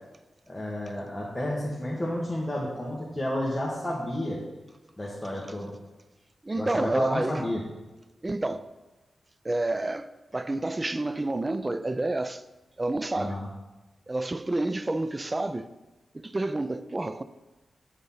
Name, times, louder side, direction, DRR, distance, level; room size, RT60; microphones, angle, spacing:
voice 1, 0.5-4.4 5.0-5.7 6.5-7.6 13.1-13.5, left 1 dB, 10° left, 1.4 m, -31 dB
voice 2, 6.4-7.4 8.2-8.7 9.4-12.4 12.8-13.4 14.1-15.7 16.1-17.2, right 2 dB, 20° right, 0.4 m, -29 dB
7.8 x 6.5 x 5.6 m
wide cardioid pair, 120°, 0 cm